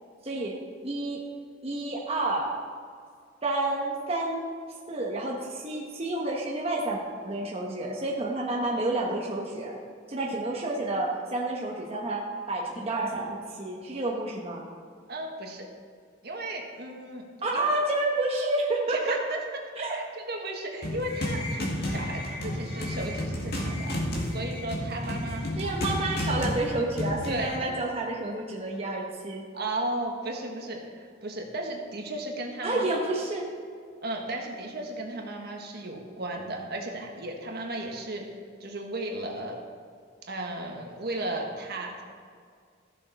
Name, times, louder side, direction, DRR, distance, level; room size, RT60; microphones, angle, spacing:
voice 1, 0.2-0.6 0.8-1.2 1.6-2.5 3.4-4.5 4.9-7.0 7.2-9.8 10.1-14.7 17.4-19.2 19.8-20.0 25.6-29.4 32.6-33.5, right 2 dB, 35° right, -2 dB, 1.1 m, -29 dB
voice 2, 15.1-15.7 16.2-17.2 17.5-17.7 18.9-19.4 19.8-23.9 24.3-25.6 27.3-27.8 29.5-32.9 34.0-38.2 38.6-39.6 40.2-42.0, right 1 dB, 60° right, 1 dB, 1.5 m, -35 dB
sound 1, 20.8-27.6, left 1 dB, 60° left, 2.1 m, -31 dB
14.5 x 7.0 x 4.1 m, 2.1 s
head